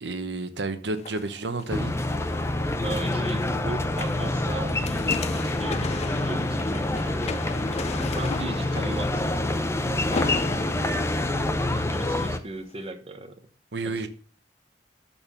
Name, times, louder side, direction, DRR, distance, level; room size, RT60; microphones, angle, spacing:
voice 1, 0.0-2.0 13.7-14.1, right 2 dB, 80° right, 1.0 m, -31 dB
sound 1, 0.9-12.2 12.7-12.8, left 5 dB, 40° left, 0.4 m, -37 dB
sound 2, 1.7-12.4, left 2 dB, 15° left, 0.8 m, -27 dB
voice 2, 2.8-7.5 8.1-9.4 10.1-10.6 11.4-13.4 13.8-14.0, right 2 dB, 35° right, 1.2 m, -38 dB
12.5 x 4.3 x 7.0 m
head